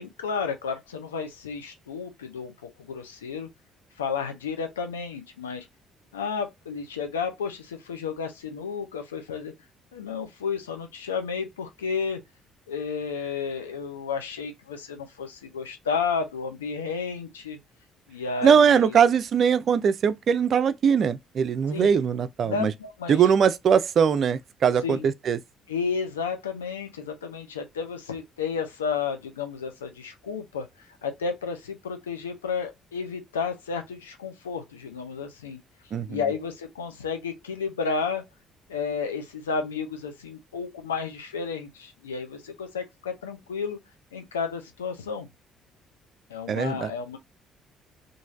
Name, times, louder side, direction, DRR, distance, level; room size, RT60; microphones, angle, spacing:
voice 1, 0.0-3.5 4.0-5.7 6.1-9.5 9.9-12.2 12.7-17.6 18.1-19.1 21.7-21.9 22.4-23.2 24.8-25.1 25.7-30.7 31.0-35.6 36.1-38.2 38.7-43.8 44.1-45.3 46.3-47.2, left 5 dB, 80° left, 0.5 m, -32 dB
voice 2, 18.4-22.7 23.1-25.4 35.9-36.2 46.5-46.9, right 7 dB, 50° right, 0.3 m, -21 dB
3.0 x 2.5 x 2.4 m
figure-of-eight pair, 45°, 0 cm